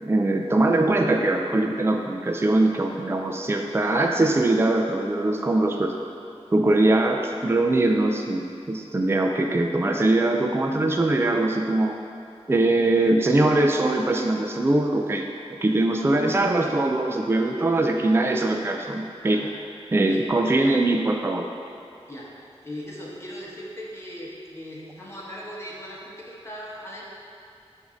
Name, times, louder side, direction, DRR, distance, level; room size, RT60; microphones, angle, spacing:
voice 1, 0.0-5.9 6.5-11.9 12.5-15.3 15.6-19.4 19.9-21.5, right 2 dB, 20° right, 2 dB, 0.4 m, -22 dB
voice 2, 22.6-27.1, equal, 25° left, -6 dB, 1.2 m, -38 dB
8.0 x 2.7 x 5.0 m, 2.5 s
wide cardioid pair, 80°, 11 cm